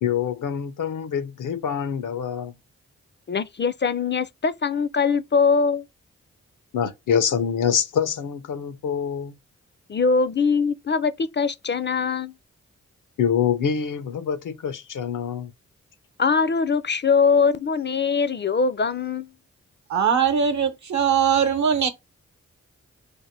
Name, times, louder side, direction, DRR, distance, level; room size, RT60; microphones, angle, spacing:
voice 1, 0.0-2.5 6.7-9.3 13.2-15.5, left 7 dB, 75° left, 0.7 m, -25 dB
voice 2, 3.3-5.8 9.9-12.3 16.2-19.3, left 5 dB, 35° left, 0.4 m, -22 dB
voice 3, 19.9-21.9, right 7 dB, 60° right, 0.9 m, -21 dB
3.3 x 2.1 x 4.2 m
supercardioid pair, 40°, 32 cm